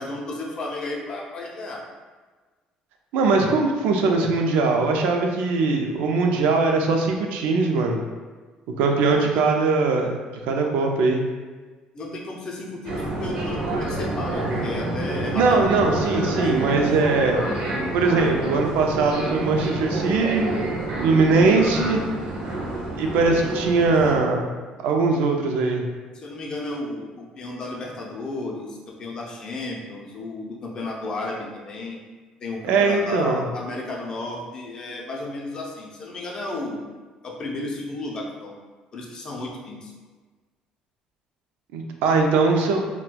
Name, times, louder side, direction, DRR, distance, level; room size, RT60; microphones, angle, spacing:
voice 1, 0.0-1.8 9.0-9.5 11.9-15.7 26.1-32.0 32.4-36.8 37.2-38.6 38.9-39.9, left 2 dB, 30° left, -2 dB, 0.5 m, -33 dB
voice 2, 3.1-8.0 8.8-10.1 10.4-11.2 15.3-17.4 17.9-20.5 21.0-22.1 23.0-24.5 24.8-25.8 32.6-33.4 41.7-42.8, right 4 dB, 90° right, 2 dB, 0.4 m, -21 dB
sound 1, 12.8-24.2, right 1 dB, 45° right, 0.7 m, -28 dB
4.1 x 2.2 x 2.2 m, 1.4 s
cardioid pair, 160°, 2 cm